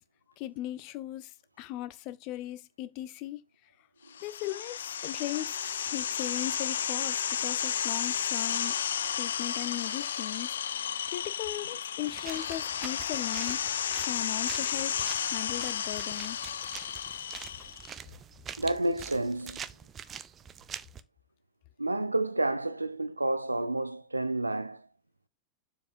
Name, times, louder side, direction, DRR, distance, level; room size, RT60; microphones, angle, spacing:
voice 1, 0.4-3.4 4.2-8.8 9.1-10.6 11.1-13.6 14.0-16.4, left 14 dB, 45° left, 0.7 m, -38 dB
sound 1, 4.1-17.9, left 9 dB, 65° left, 0.3 m, -33 dB
sound 2, 12.1-21.0, right 8 dB, 25° right, 0.7 m, -45 dB
voice 2, 18.6-19.6 21.8-24.9, right 2 dB, 85° right, 0.5 m, -30 dB
7.3 x 4.6 x 4.5 m
figure-of-eight pair, 90°, 0 cm